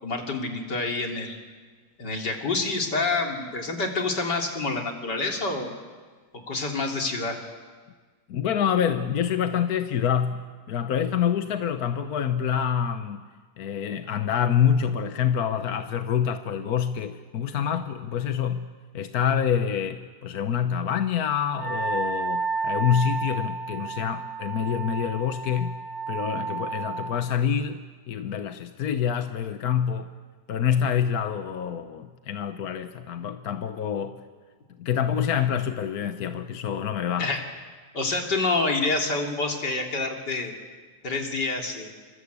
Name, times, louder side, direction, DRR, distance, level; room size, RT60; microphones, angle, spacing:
voice 1, 0.0-1.4 2.0-5.7 6.5-7.4 37.2-37.4 37.9-40.5 41.0-41.9, left 3 dB, 85° left, 2 dB, 3.9 m, -27 dB
voice 2, 8.3-13.2 13.6-18.7 18.9-25.8 26.1-30.1 30.5-34.2 34.8-37.3, left 8 dB, 65° left, 8 dB, 1.4 m, -26 dB
Wind instrument woodwind instrument, 21.5-27.1, right 4 dB, 40° left, 3.2 m, -31 dB
27.5 x 25.0 x 8.3 m, 1.5 s
omnidirectional pair, 1.8 m